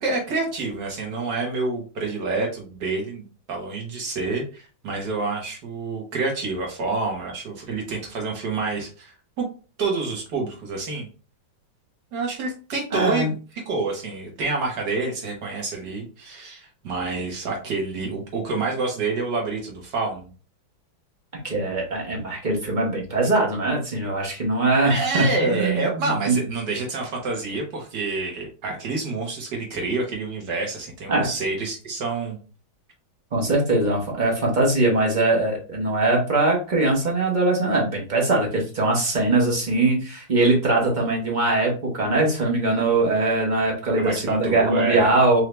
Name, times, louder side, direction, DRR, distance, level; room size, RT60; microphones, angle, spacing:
voice 1, 0.0-9.5 9.8-11.1 12.1-13.3 13.7-20.3 24.8-32.4 44.0-45.1, right 3 dB, 60° right, 0 dB, 1.9 m, -28 dB
voice 2, 12.9-13.3 21.3-26.4 31.1-31.3 33.3-45.4, right 2 dB, 30° right, -1 dB, 1.1 m, -21 dB
4.6 x 2.8 x 3.3 m, 0.36 s
omnidirectional pair, 2.2 m